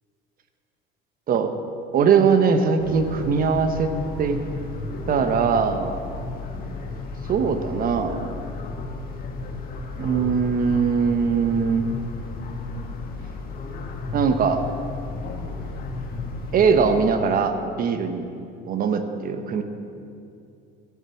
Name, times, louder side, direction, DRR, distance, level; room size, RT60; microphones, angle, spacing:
voice 1, 1.9-3.9 4.2-4.4 5.1-6.0 7.3-8.4 10.0-11.8 14.1-14.6 16.5-18.2 18.7-19.6, right 6 dB, 45° right, 7 dB, 1.2 m, -21 dB
sound 1, 2.8-17.1, left 3 dB, 45° left, 1.7 m, -34 dB
14.5 x 7.6 x 7.1 m, 2.6 s
cardioid pair, 120°, 21 cm